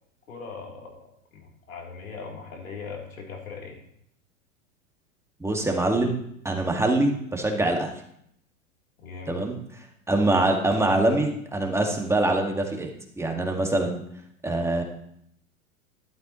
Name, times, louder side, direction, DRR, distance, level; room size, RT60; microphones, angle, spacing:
voice 1, 0.3-1.1 1.3-3.8 9.0-9.4, left 5 dB, 85° left, -2 dB, 3.7 m, -39 dB
voice 2, 5.4-6.2 6.4-7.9 9.3-9.6 10.1-12.9 13.2-14.0 14.4-14.8, right 2 dB, 5° right, 1 dB, 2.1 m, -24 dB
12.5 x 12.0 x 3.2 m, 0.72 s
hypercardioid pair, 100°, 40 cm